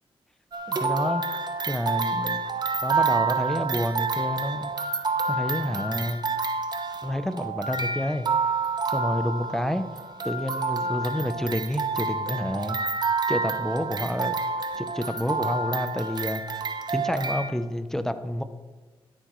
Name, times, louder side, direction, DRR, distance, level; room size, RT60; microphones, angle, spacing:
sound 1, 0.5-17.5, right 4 dB, 45° right, 0.7 m, -28 dB
voice 1, 0.7-1.2 1.7-2.4 2.8-4.7 5.3-6.2 7.0-8.2 8.9-9.8 10.2-12.8 13.3-14.4 14.8-18.4, left 1 dB, 5° left, 10 dB, 0.6 m, -29 dB
12.5 x 10.5 x 3.1 m, 1.3 s
wide cardioid pair, 160°, 10 cm